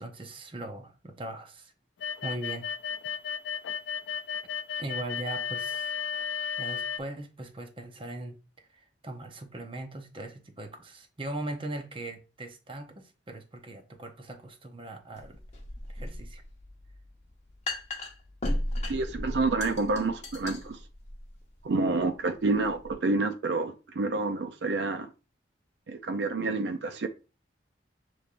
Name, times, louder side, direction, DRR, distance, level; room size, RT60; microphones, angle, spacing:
voice 1, 0.0-1.7 2.2-2.7 4.8-5.9 6.6-8.4 8.7-15.4 15.9-16.4, right 2 dB, 30° right, 0.7 m, -40 dB
sound 1, 2.0-7.0, left 7 dB, 80° left, 0.4 m, -34 dB
sound 2, 15.2-22.9, left 1 dB, 40° left, 0.9 m, -36 dB
voice 2, 18.9-20.8 21.6-25.1 25.9-27.1, right 3 dB, 70° right, 0.4 m, -28 dB
6.8 x 3.1 x 2.5 m
head